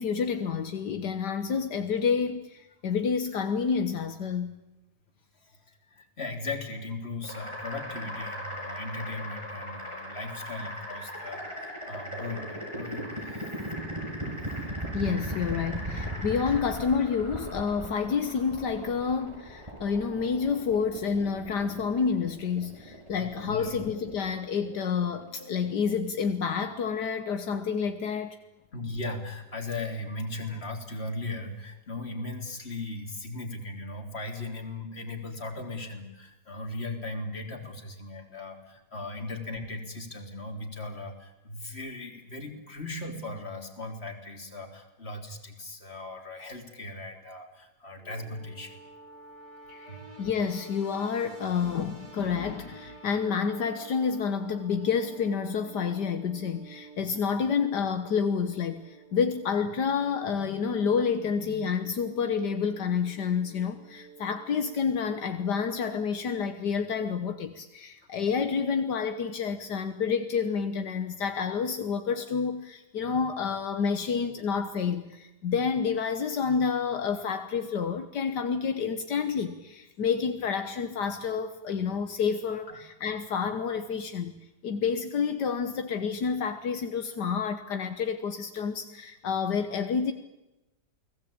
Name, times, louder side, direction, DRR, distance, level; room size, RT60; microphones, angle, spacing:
voice 1, 0.0-4.6 14.9-28.4 49.7-84.3 84.6-90.1, left 6 dB, 75° left, 8 dB, 1.8 m, -29 dB
voice 2, 5.4-13.7 16.3-16.6 23.1-23.8 28.7-48.8 49.9-50.0 82.7-82.8, left 2 dB, 35° left, 3 dB, 3.6 m, -38 dB
sound 1, 7.2-26.0, equal, 15° right, 7.1 m, -38 dB
sound 2, 48.0-65.6, right 3 dB, 80° right, 5.4 m, -51 dB
29.5 x 19.5 x 8.7 m, 0.98 s
omnidirectional pair, 1.8 m